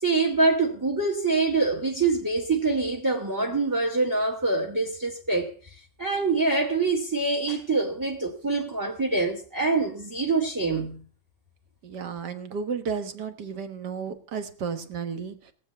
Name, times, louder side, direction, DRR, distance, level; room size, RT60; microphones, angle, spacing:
voice 1, 0.0-5.5 6.0-11.0, right 3 dB, 10° right, 1.1 m, -25 dB
voice 2, 11.8-15.5, right 6 dB, 60° right, 1.9 m, -33 dB
18.0 x 7.7 x 6.7 m
omnidirectional pair, 2.1 m